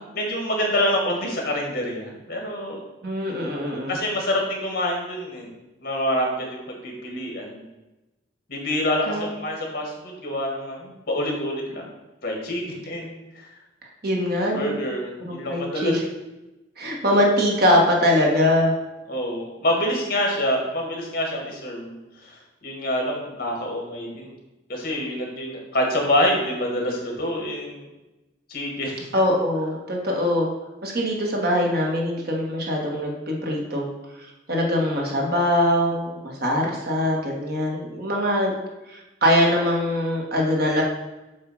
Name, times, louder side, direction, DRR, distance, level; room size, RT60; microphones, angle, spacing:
voice 1, 0.0-2.8 3.9-5.5 5.8-7.7 8.5-11.9 12.2-13.5 14.5-15.9 19.1-24.3 24.7-27.9 28.5-29.1, left 1 dB, 55° left, 0 dB, 1.6 m, -26 dB
voice 2, 3.0-3.9 9.1-9.3 14.0-14.8 15.2-16.0 16.8-18.7 29.1-30.5 30.8-33.9 34.2-38.5 38.9-40.8, left 1 dB, 60° right, -1 dB, 1.5 m, -22 dB
7.7 x 2.8 x 6.0 m, 1.0 s
head